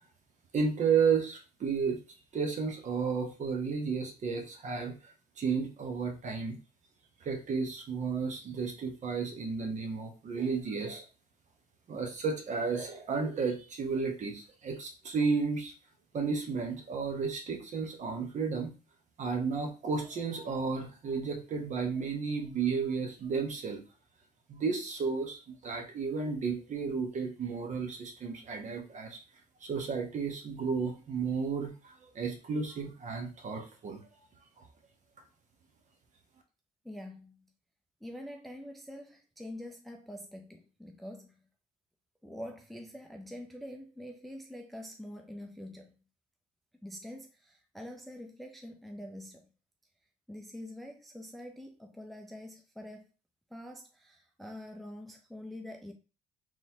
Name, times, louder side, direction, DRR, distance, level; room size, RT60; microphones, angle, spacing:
voice 1, 0.5-2.0 2.3-6.6 7.2-11.0 11.9-15.7 16.1-18.7 19.2-23.8 24.5-29.2 29.6-34.0 34.6-34.7, right 5 dB, 45° right, 0.9 m, -33 dB
voice 2, 36.8-37.5 38.0-41.4 42.2-45.9 46.8-49.5 50.3-53.1 53.5-55.9, left 1 dB, ahead, 0.5 m, -45 dB
3.8 x 3.1 x 2.7 m
cardioid pair, 110°, 17 cm